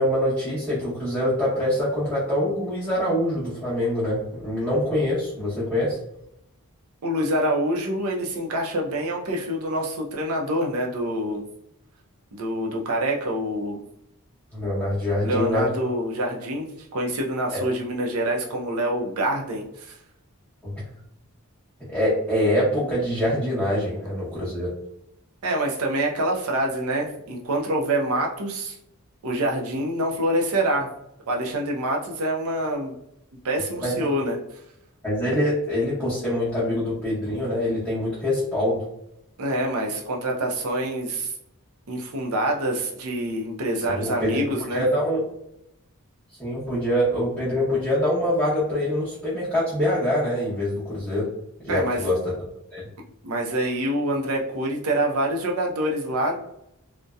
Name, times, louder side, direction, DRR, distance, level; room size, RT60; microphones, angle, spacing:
voice 1, 0.0-6.0 14.5-15.7 17.5-17.6 20.6-20.7 21.9-24.7 33.8-33.9 35.0-38.8 43.8-44.4 44.7-45.2 46.4-51.3 51.6-52.2 52.7-52.8, left 1 dB, 5° left, -12 dB, 0.8 m, -24 dB
voice 2, 7.0-11.4 12.3-13.8 15.2-20.0 25.4-28.8 29.2-30.9 31.3-32.9 33.4-34.4 39.4-41.3 41.9-44.8 51.7-52.1 53.2-56.4, right 1 dB, 70° right, 0 dB, 0.5 m, -26 dB
2.6 x 2.1 x 2.3 m, 0.80 s
head